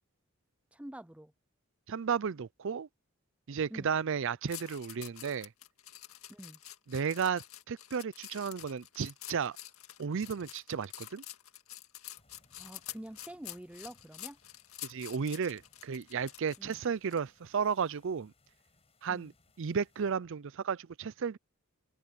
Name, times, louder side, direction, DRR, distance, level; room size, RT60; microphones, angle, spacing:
voice 1, 0.7-1.3 3.7-4.0 6.3-6.6 12.6-14.4 16.6-16.8 19.1-19.3, right 1 dB, 5° right, 0.4 m, -47 dB
voice 2, 1.9-2.9 3.5-5.5 6.9-9.6 10.0-11.2 14.8-18.3 19.0-19.3 19.6-21.4, right 6 dB, 60° right, 0.5 m, -33 dB
sound 1, 4.5-17.2 17.6-17.9, left 13 dB, 75° left, 2.0 m, -48 dB
sound 2, 12.1-20.1, left 2 dB, 30° left, 5.9 m, -69 dB
open air
head